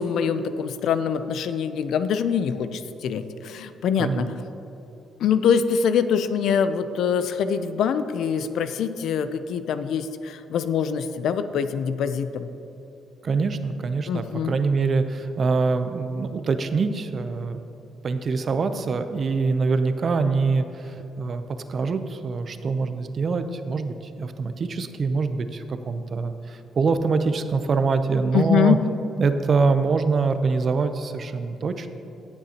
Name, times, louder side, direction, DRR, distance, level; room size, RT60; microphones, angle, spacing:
voice 1, 0.0-4.4 5.2-12.5 14.1-14.5 18.8-19.0 28.3-28.8, left 7 dB, 75° left, 11 dB, 0.5 m, -24 dB
voice 2, 13.2-17.6 18.0-21.4 21.7-28.8 29.2-31.9, right 4 dB, 45° right, 9 dB, 0.6 m, -24 dB
16.5 x 6.8 x 2.9 m, 3.0 s
cardioid pair, 90°, 0 cm